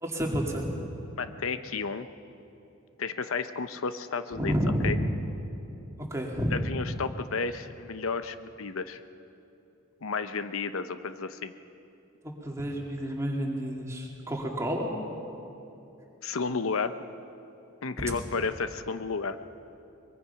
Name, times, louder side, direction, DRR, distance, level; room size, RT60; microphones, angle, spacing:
voice 1, 0.0-0.6 4.4-4.9 6.1-6.6 12.2-14.9 18.0-18.1, equal, 15° right, -1 dB, 2.4 m, -30 dB
voice 2, 1.2-2.1 3.0-4.5 4.8-5.0 6.5-9.0 10.0-11.5 16.2-16.9 17.8-19.4, left 4 dB, 85° left, 11 dB, 0.7 m, -32 dB
23.0 x 22.0 x 5.8 m, 2.8 s
head